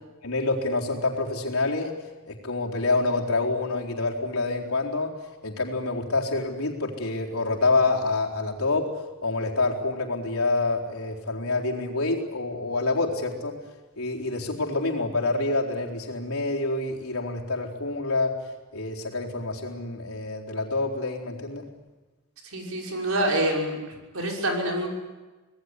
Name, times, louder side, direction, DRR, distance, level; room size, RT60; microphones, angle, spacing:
voice 1, 0.2-2.0 2.3-5.2 5.4-13.6 14.0-18.3 18.7-21.7, left 3 dB, 80° left, -1 dB, 4.1 m, -27 dB
voice 2, 22.5-23.7 24.1-24.9, right 1 dB, 75° right, 0 dB, 6.1 m, -26 dB
26.0 x 19.5 x 10.0 m, 1.2 s
head